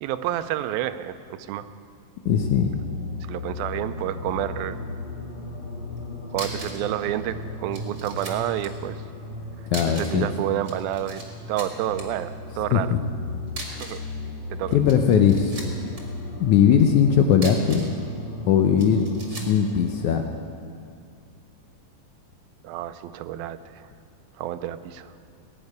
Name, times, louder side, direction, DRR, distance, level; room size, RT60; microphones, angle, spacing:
voice 1, 0.0-1.7 3.3-4.8 6.3-9.0 10.0-11.2 11.5-12.9 13.7-14.0 14.5-14.8 22.6-23.9 24.4-25.1, right 12 dB, 90° right, 12 dB, 2.5 m, -29 dB
voice 2, 2.3-2.7 9.7-10.3 12.7-13.0 14.7-15.6 16.4-17.8 18.5-20.2, left 8 dB, 75° left, 5 dB, 1.8 m, -19 dB
sound 1, 2.3-20.1, left 2 dB, 20° left, 2.2 m, -36 dB
sound 2, 6.3-6.9 7.1-7.2 7.7-8.7 9.7-10.3 10.5-11.3 11.6-12.0 13.5-14.1 14.7-16.0 17.3-18.0 18.8-19.6, right 2 dB, 35° right, 2.1 m, -38 dB
19.0 x 6.9 x 9.5 m, 2.3 s
omnidirectional pair, 4.1 m